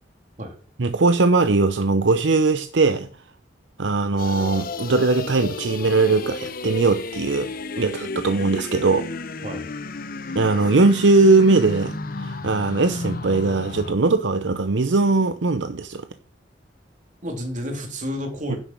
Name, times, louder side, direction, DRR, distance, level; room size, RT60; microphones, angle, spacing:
voice 1, 0.8-3.1 3.8-9.1 10.3-16.1 18.5-18.6, right 3 dB, 75° right, 0.8 m, -20 dB
sound 1, 4.2-13.9, left 3 dB, 50° left, 0.9 m, -33 dB
voice 2, 17.2-18.6, equal, 45° right, 3.3 m, -30 dB
10.5 x 7.1 x 7.6 m
head